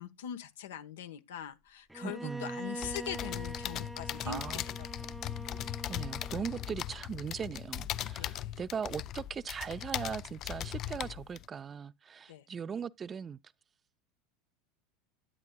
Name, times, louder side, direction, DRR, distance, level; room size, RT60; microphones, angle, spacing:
voice 1, 0.0-4.4 4.8-4.9 8.2-8.5 12.3-12.4, left 9 dB, 75° left, 1.1 m, -42 dB
Bowed string instrument, 1.9-6.9, right 2 dB, 5° right, 0.8 m, -44 dB
voice 2, 2.0-2.6 4.2-4.7 5.9-13.4, right 7 dB, 30° right, 0.5 m, -39 dB
sound 1, 2.8-11.5, left 12 dB, 45° left, 0.4 m, -39 dB
11.0 x 9.5 x 2.3 m
hypercardioid pair, 80°, 0 cm